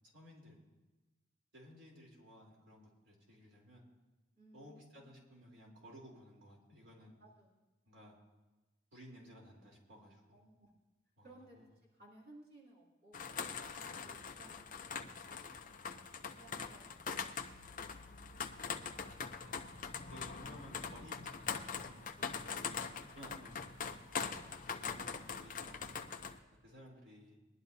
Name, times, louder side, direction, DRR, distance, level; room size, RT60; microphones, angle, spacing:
voice 1, 0.1-0.6 1.5-3.8 4.5-7.1 7.8-8.2 8.9-10.4 11.2-11.3 19.4-19.6 20.1-24.0 24.8-26.0 26.6-27.4, equal, 85° right, -3 dB, 3.5 m, -56 dB
voice 2, 4.4-5.3 7.2-7.5 10.3-10.7 11.2-13.2 13.7-18.5 22.1-22.6 24.4-25.0, right 1 dB, 55° right, -5 dB, 3.0 m, -62 dB
sound 1, 13.1-26.4, left 6 dB, 45° left, 0.6 m, -43 dB
21.0 x 11.5 x 2.8 m, 1.2 s
head